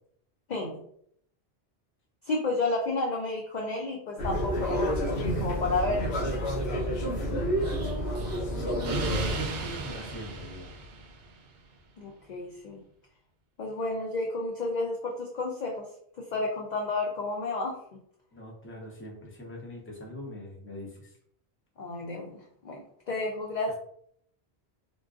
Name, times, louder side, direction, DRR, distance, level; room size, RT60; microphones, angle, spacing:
voice 1, 2.3-6.2 12.0-12.8 13.6-15.8 16.3-17.8 21.8-22.4 22.6-23.8, left 2 dB, 55° left, 0 dB, 0.5 m, -31 dB
sound 1, 4.2-9.3, equal, 75° left, 1.2 m, -29 dB
Explosion, 7.6-11.5, right 2 dB, 70° right, 0.8 m, -37 dB
voice 2, 8.5-10.7 18.3-21.1, equal, 15° left, -2 dB, 0.7 m, -41 dB
3.8 x 2.4 x 2.4 m, 0.67 s
omnidirectional pair, 1.1 m